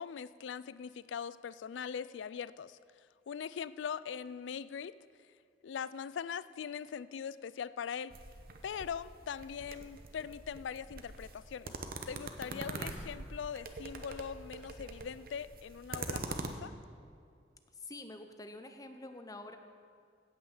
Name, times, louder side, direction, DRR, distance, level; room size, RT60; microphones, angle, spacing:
voice 1, 0.0-2.8 3.3-4.9 5.6-8.1 8.6-11.7 12.1-16.7, left 7 dB, 85° left, 17 dB, 0.4 m, -41 dB
sound 1, 8.1-16.5, right 3 dB, 55° right, 1.0 m, -44 dB
voice 2, 12.5-13.1 17.7-19.6, left 2 dB, 20° left, 7 dB, 0.8 m, -48 dB
16.5 x 6.2 x 7.2 m, 2.3 s
head